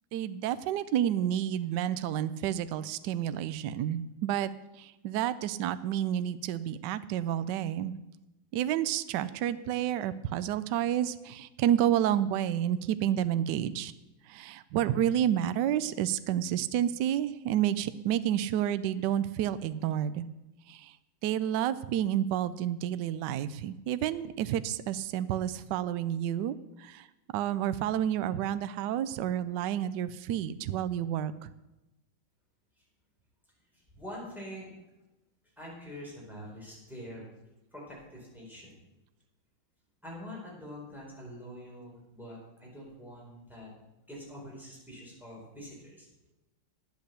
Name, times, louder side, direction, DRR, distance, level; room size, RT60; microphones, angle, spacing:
voice 1, 0.1-4.5 4.8-7.9 8.5-13.9 14.3-20.2 20.7-20.9 21.2-27.1 27.3-31.5, right 11 dB, 75° right, 14 dB, 1.1 m, -30 dB
voice 2, 33.7-34.7 35.6-37.2 37.7-38.8 40.0-43.7 44.1-46.1, equal, ahead, -5 dB, 4.3 m, -45 dB
10.5 x 8.3 x 6.7 m, 0.97 s
omnidirectional pair, 2.1 m